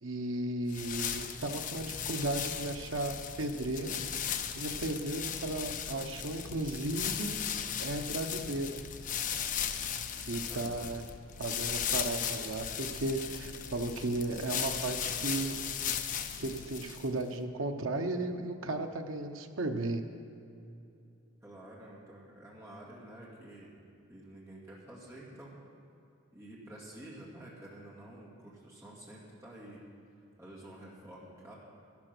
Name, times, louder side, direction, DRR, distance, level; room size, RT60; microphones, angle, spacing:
voice 1, 0.0-7.4 7.8-8.8 10.2-11.0 11.4-15.6 16.4-20.0, right 2 dB, 75° right, 5 dB, 0.9 m, -35 dB
sound 1, 0.7-17.2, left 8 dB, 40° left, 0.5 m, -37 dB
voice 2, 10.5-10.9 21.4-23.8 24.1-25.6 26.3-29.8 30.4-31.5, right 1 dB, 15° right, -6 dB, 2.2 m, -50 dB
12.0 x 11.0 x 6.1 m, 2.6 s
head